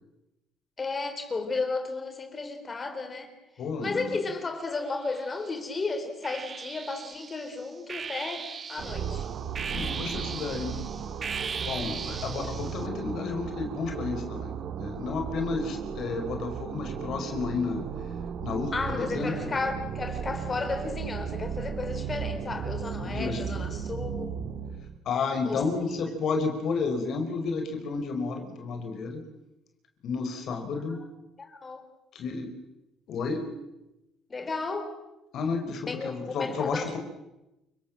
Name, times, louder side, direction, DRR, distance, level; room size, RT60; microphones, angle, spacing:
voice 1, 0.8-3.3 3.8-9.3 18.7-24.4 25.4-25.6 31.4-31.8 34.3-34.9 35.9-37.0, left 3 dB, 30° left, 6 dB, 4.3 m, -33 dB
voice 2, 3.6-4.2 9.7-10.8 11.5-17.9 18.4-19.5 23.0-23.5 25.0-29.2 30.0-31.0 32.1-32.6 33.1-33.5 35.3-37.0, left 4 dB, 60° left, 4 dB, 5.0 m, -31 dB
sound 1, 4.9-5.6 6.2-12.9, right 6 dB, 35° right, 1.3 m, -38 dB
sound 2, 8.8-25.0, right 7 dB, 60° right, 1.8 m, -35 dB
29.5 x 19.0 x 7.6 m, 0.95 s
cardioid pair, 100°, 0 cm